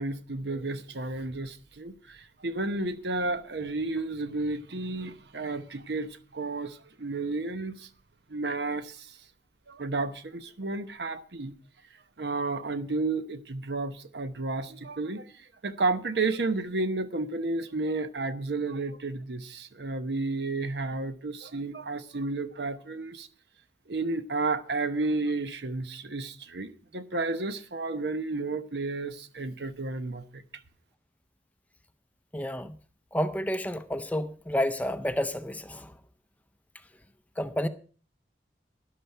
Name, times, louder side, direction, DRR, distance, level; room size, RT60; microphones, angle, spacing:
voice 1, 0.0-7.9 8.3-9.2 9.7-11.5 12.2-23.3 23.9-30.4, right 3 dB, 70° right, 0.9 m, -32 dB
voice 2, 32.3-32.8 33.1-35.9 37.4-37.7, left 1 dB, 10° left, 0.5 m, -30 dB
12.0 x 11.5 x 4.5 m
head